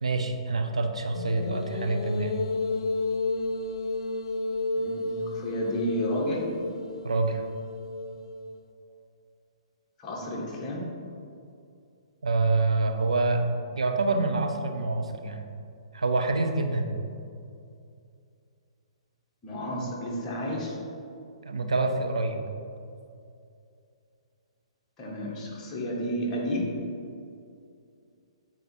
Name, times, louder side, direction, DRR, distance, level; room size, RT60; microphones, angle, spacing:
voice 1, 0.0-2.3 7.0-7.4 12.2-15.4 15.9-16.9 21.4-22.4, right 3 dB, 80° right, 5 dB, 0.7 m, -26 dB
sound 1, 1.1-8.5, left 3 dB, 60° left, 0.4 m, -32 dB
voice 2, 4.7-6.5 10.0-10.9 19.4-20.8 25.0-26.8, equal, 25° left, -4 dB, 1.7 m, -31 dB
8.5 x 4.0 x 4.5 m, 2.5 s
figure-of-eight pair, 125°, 3 cm